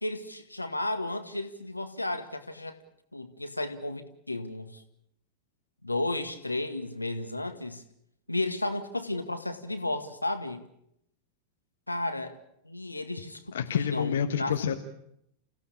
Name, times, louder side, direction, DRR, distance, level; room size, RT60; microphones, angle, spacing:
voice 1, 0.0-2.8 3.1-4.8 5.8-7.8 8.3-10.6 11.9-12.4 12.6-14.5, left 2 dB, 85° left, 2.0 m, -33 dB
voice 2, 13.5-14.8, left 8 dB, 65° left, 1.4 m, -28 dB
29.5 x 16.5 x 8.7 m
figure-of-eight pair, 90°, 0 cm